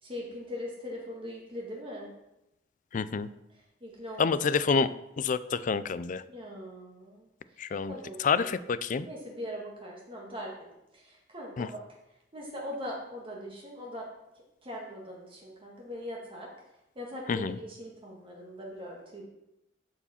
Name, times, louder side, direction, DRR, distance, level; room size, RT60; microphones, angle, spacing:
voice 1, 0.0-2.1 3.8-4.7 6.3-7.3 7.9-8.5 9.0-10.7 10.9-11.8 12.3-14.1 14.6-16.5 16.9-19.2, equal, 30° right, -2 dB, 1.7 m, -41 dB
voice 2, 2.9-3.3 4.2-4.9 5.2-6.2 7.6-7.9 8.2-9.1 11.6-11.7 17.3-17.6, left 5 dB, 45° left, 15 dB, 0.4 m, -28 dB
12.5 x 4.8 x 4.3 m, 0.89 s
head